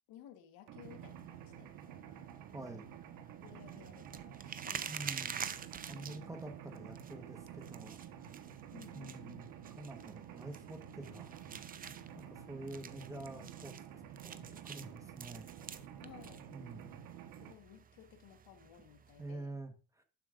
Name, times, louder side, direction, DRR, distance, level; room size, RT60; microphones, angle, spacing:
voice 1, 0.1-1.7 3.4-5.0 6.0-6.4 8.7-9.6 16.0-16.5 17.2-19.6, left 10 dB, 70° left, 1.4 m, -57 dB
Mechanisms, 0.7-17.5, right 9 dB, 65° right, 1.4 m, -50 dB
sound 1, 0.8-19.3, right 7 dB, 25° right, 0.6 m, -49 dB
voice 2, 2.5-2.9 4.9-5.5 5.9-8.4 8.9-11.3 12.1-15.5 16.5-17.0 19.2-20.0, right 2 dB, 10° right, 1.2 m, -48 dB
11.5 x 7.4 x 2.5 m
cardioid pair, 120°, 36 cm